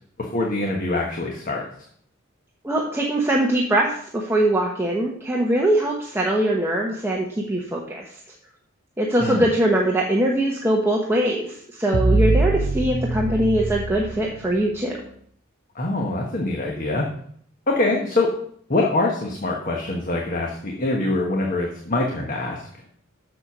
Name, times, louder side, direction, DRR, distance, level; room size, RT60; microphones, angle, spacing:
voice 1, 0.2-1.6 9.2-9.5 15.7-17.1 17.7-18.3 18.7-22.6, left 2 dB, 40° left, 0 dB, 1.2 m, -24 dB
voice 2, 2.6-8.0 9.0-15.0, right 1 dB, 10° right, -2 dB, 1.1 m, -22 dB
sound 1, 11.9-15.0, right 2 dB, 45° right, 0.6 m, -23 dB
7.1 x 6.7 x 6.1 m, 0.64 s
head